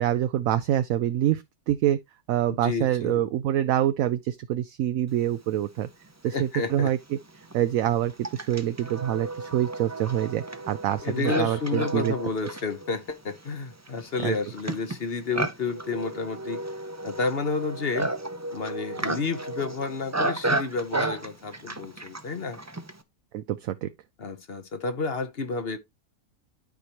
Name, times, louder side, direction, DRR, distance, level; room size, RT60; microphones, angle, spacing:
voice 1, 0.0-2.0 2.3-5.9 6.2-7.2 7.5-12.2 14.2-14.4 23.3-23.9, right 11 dB, 70° right, 1.0 m, -26 dB
voice 2, 2.5-3.2 6.2-6.9 11.0-16.6 17.0-18.1 18.5-22.6 24.2-25.8, left 4 dB, 45° left, 1.1 m, -30 dB
Livestock farm animals working animals, 6.2-6.3 7.1-23.0, right 2 dB, 20° right, 0.5 m, -33 dB
12.0 x 4.8 x 2.9 m
omnidirectional pair, 1.6 m